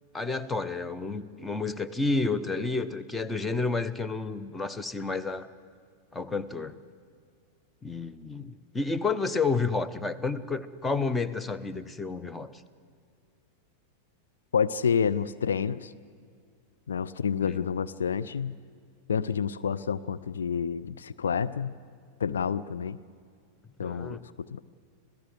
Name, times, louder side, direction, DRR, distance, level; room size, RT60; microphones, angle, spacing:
voice 1, 0.1-5.5 6.1-6.8 7.8-12.5 17.4-17.5 23.8-24.2, left 4 dB, 10° left, 12 dB, 0.9 m, -30 dB
voice 2, 14.5-15.9 16.9-18.6 19.1-21.7 22.2-23.0 23.8-24.6, left 7 dB, 65° left, 12 dB, 0.5 m, -29 dB
27.0 x 17.0 x 8.2 m, 2.2 s
figure-of-eight pair, 90°, 0 cm